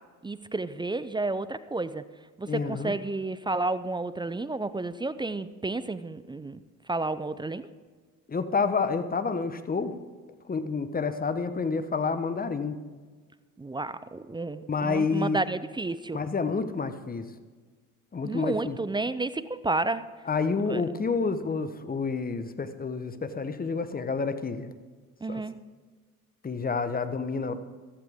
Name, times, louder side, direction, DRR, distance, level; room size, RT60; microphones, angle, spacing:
voice 1, 0.2-2.0 2.4-6.6 6.9-7.7 13.6-16.2 18.2-20.1 20.7-20.8 25.2-25.6, right 2 dB, 10° right, 15 dB, 0.5 m, -31 dB
voice 2, 2.5-2.9 8.3-9.9 10.5-12.8 14.7-15.4 16.1-17.2 18.1-18.8 20.3-24.7 25.3-25.4 26.4-27.6, left 4 dB, 20° left, 10 dB, 1.1 m, -29 dB
15.5 x 14.0 x 3.6 m, 1.4 s
hypercardioid pair, 65°, 42 cm